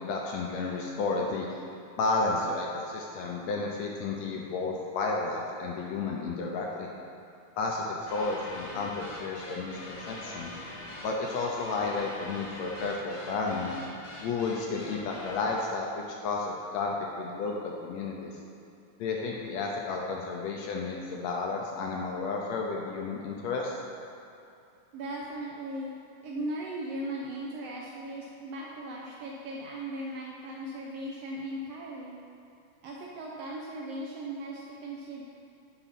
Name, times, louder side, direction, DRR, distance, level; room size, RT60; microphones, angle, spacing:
voice 1, 0.0-1.5 2.0-6.9 7.6-10.5 11.0-13.7 14.2-18.3 19.0-23.8, left 3 dB, 80° left, -1 dB, 1.6 m, -32 dB
sound 1, 8.1-15.5, left 1 dB, 65° left, 0.9 m, -43 dB
voice 2, 24.9-25.9 26.2-32.2 32.8-35.2, right 1 dB, 85° right, -3 dB, 1.3 m, -38 dB
10.0 x 4.0 x 5.8 m, 2.7 s
omnidirectional pair, 3.8 m